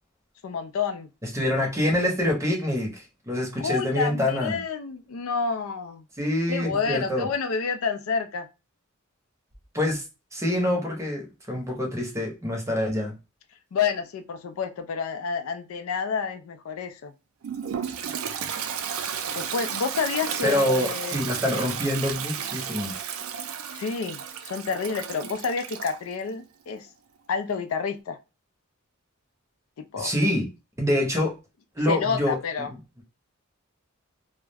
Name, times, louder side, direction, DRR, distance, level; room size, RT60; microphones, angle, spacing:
voice 1, 0.4-1.1 3.6-6.0 6.5-8.5 13.7-17.1 19.4-21.3 23.7-26.9 27.3-28.2 29.8-30.1 31.9-32.7, left 5 dB, 70° left, 8 dB, 0.4 m, -29 dB
voice 2, 1.2-4.6 6.2-7.3 9.7-10.0 10.3-13.2 20.4-22.9 30.0-30.5 30.8-31.3 31.7-32.8, left 1 dB, 15° right, 1 dB, 0.7 m, -26 dB
Toilet flush, 17.4-26.0, right 8 dB, 70° right, 0.4 m, -33 dB
2.3 x 2.1 x 3.2 m, 0.28 s
head